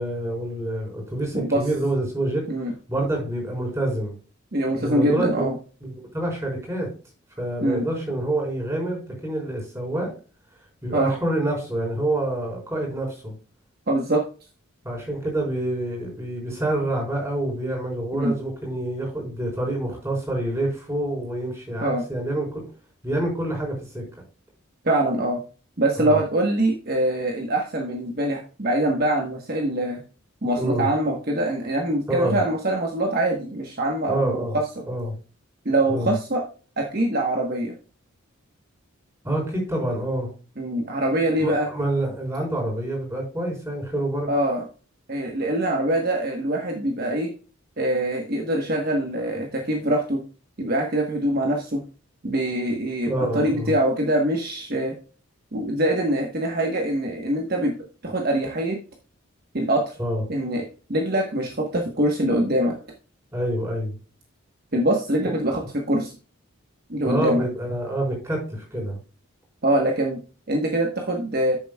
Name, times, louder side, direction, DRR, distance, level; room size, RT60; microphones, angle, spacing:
voice 1, 0.0-2.4 2.9-4.1 4.8-5.5 5.8-6.9 7.4-10.1 10.8-13.3 14.8-22.6 23.0-24.0 26.0-26.2 30.6-30.9 32.1-32.4 34.1-34.6 34.9-35.1 35.9-36.1 39.2-40.3 41.4-44.3 53.1-53.7 60.0-60.2 63.3-64.0 67.0-69.0, right 1 dB, 15° right, -2 dB, 4.1 m, -27 dB
voice 2, 4.5-5.6 7.6-7.9 10.9-11.1 13.9-14.3 18.1-18.3 21.8-22.0 24.8-25.4 25.8-30.0 30.4-34.6 35.6-36.4 36.8-37.7 40.6-41.7 44.3-44.7 45.1-47.3 47.8-50.2 50.6-51.8 52.2-55.0 55.5-57.7 58.0-58.8 59.5-60.0 60.3-62.7 64.7-65.6 65.9-66.1 66.9-67.4 69.6-70.2 70.5-71.6, right 1 dB, 45° right, 1 dB, 1.1 m, -23 dB
13.0 x 7.0 x 2.3 m, 0.37 s
head